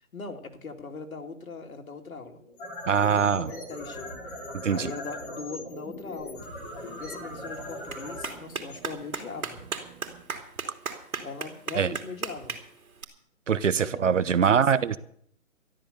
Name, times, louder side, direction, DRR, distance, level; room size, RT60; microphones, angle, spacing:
voice 1, 0.1-2.4 3.1-4.2 4.7-6.4 7.0-9.6 11.2-12.6 13.8-14.7, left 4 dB, 85° left, 4 dB, 2.6 m, -40 dB
sound 1, 2.4-9.5, left 1 dB, 15° left, 3.3 m, -40 dB
voice 2, 2.9-3.5 4.6-4.9 11.7-11.9 13.5-15.0, right 7 dB, 60° right, 16 dB, 1.0 m, -23 dB
sound 2, 3.4-10.2, right 7 dB, 30° right, 3.0 m, -53 dB
Clapping, 6.4-13.0, right 5 dB, 85° right, 2.9 m, -39 dB
13.0 x 11.5 x 6.8 m, 0.66 s
hypercardioid pair, 170°, 41 cm